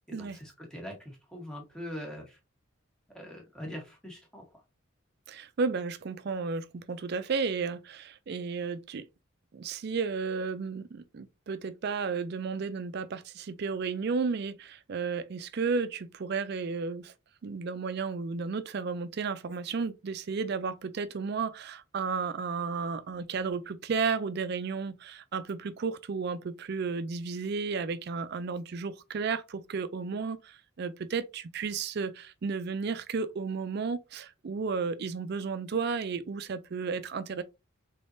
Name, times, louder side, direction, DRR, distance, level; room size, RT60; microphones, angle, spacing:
voice 1, 0.1-2.4 3.1-4.4, equal, 5° left, 1.2 m, -42 dB
voice 2, 5.3-9.1 9.5-17.1 17.4-37.4, right 5 dB, 50° right, 0.4 m, -33 dB
3.9 x 3.5 x 2.6 m
head